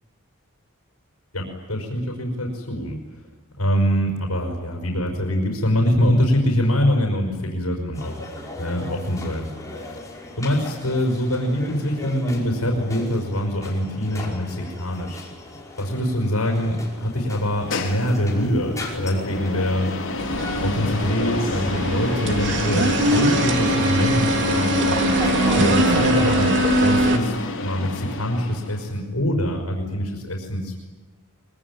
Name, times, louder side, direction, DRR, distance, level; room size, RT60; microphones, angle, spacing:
voice 1, 1.3-3.0 3.6-8.2 8.6-9.5 10.4-15.2 15.8-19.9 20.6-25.0 25.5-30.8, equal, 80° left, 0 dB, 5.3 m, -24 dB
sound 1, 7.9-26.4, left 2 dB, 15° left, 5.4 m, -37 dB
sound 2, 17.3-28.9, left 2 dB, 65° left, 3.9 m, -29 dB
sound 3, 20.2-27.2, right 1 dB, 55° right, 3.0 m, -21 dB
25.0 x 22.0 x 9.8 m, 1.4 s
head